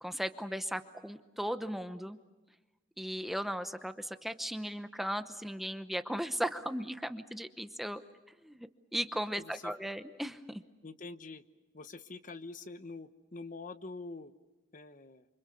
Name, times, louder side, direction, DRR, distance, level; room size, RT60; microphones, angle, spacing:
voice 1, 0.0-2.2 3.0-8.0 8.4-10.6, equal, ahead, 9 dB, 0.9 m, -37 dB
voice 2, 9.4-9.7 10.8-11.4 11.7-14.3 14.7-15.3, left 3 dB, 45° left, 11 dB, 1.0 m, -45 dB
29.0 x 25.5 x 6.9 m, 1.2 s
head